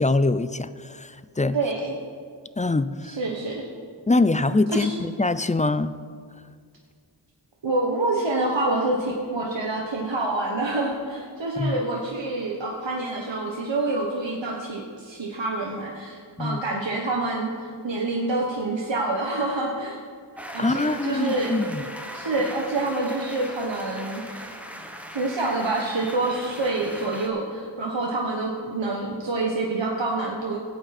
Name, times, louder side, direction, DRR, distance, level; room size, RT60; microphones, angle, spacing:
voice 1, 0.0-1.6 2.6-3.2 4.1-5.9 11.6-11.7 16.4-16.6 20.6-21.8, left 2 dB, 20° left, 14 dB, 0.3 m, -23 dB
voice 2, 1.5-2.0 3.1-3.7 4.7-4.9 7.6-20.0 20.5-21.5 22.1-24.5 25.1-30.6, right 2 dB, 65° right, -2 dB, 1.3 m, -27 dB
sound 1, 20.3-27.3, equal, 5° right, 1.2 m, -39 dB
16.5 x 8.8 x 4.3 m, 2.1 s
wide cardioid pair, 50°, 47 cm